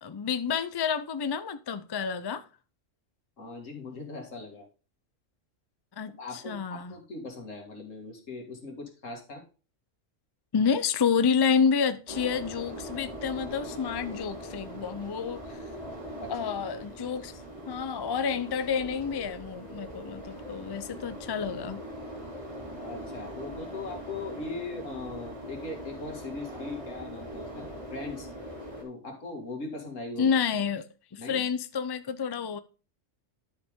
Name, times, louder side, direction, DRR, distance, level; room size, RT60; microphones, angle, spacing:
voice 1, 0.0-2.4 6.0-7.0 10.5-15.4 16.3-17.3 17.7-21.8 30.2-30.8 31.1-32.6, left 6 dB, 40° left, 0.3 m, -29 dB
voice 2, 3.4-4.6 6.2-9.4 16.2-16.3 22.7-28.3 28.8-30.3 31.2-31.4, left 3 dB, 90° left, 2.5 m, -40 dB
sound 1, 12.1-28.8, equal, 25° right, 2.4 m, -41 dB
11.0 x 5.1 x 3.7 m
omnidirectional pair, 1.3 m